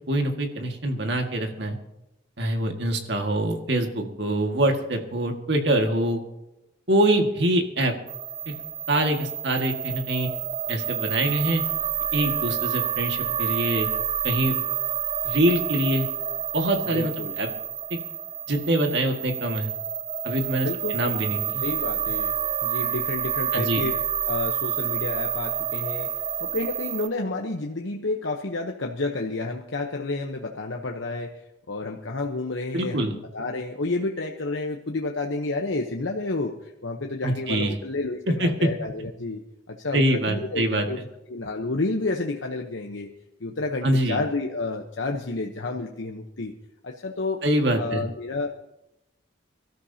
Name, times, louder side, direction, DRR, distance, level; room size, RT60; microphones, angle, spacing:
voice 1, 0.1-1.8 2.4-6.2 6.9-7.9 8.5-8.6 8.9-10.3 10.7-11.6 12.1-13.9 14.2-14.5 15.2-16.1 16.5-17.5 17.9-18.0 18.5-19.7 20.2-20.7 20.9-21.6 23.5-23.8 32.7-33.1 37.2-37.7 38.4-38.5 39.9-41.1 43.8-44.2 47.4-48.0, right 1 dB, 60° right, 3 dB, 1.9 m, -24 dB
sound 1, 8.1-27.1, right 9 dB, 25° right, 0.4 m, -29 dB
voice 2, 16.9-17.3 20.6-21.0 21.6-22.3 22.6-23.9 24.3-26.1 26.4-31.4 31.7-39.4 39.7-41.0 41.3-43.1 43.4-46.5 46.8-47.4 47.8-48.5, left 3 dB, 75° left, 2 dB, 1.0 m, -30 dB
24.0 x 13.0 x 2.8 m, 0.90 s
head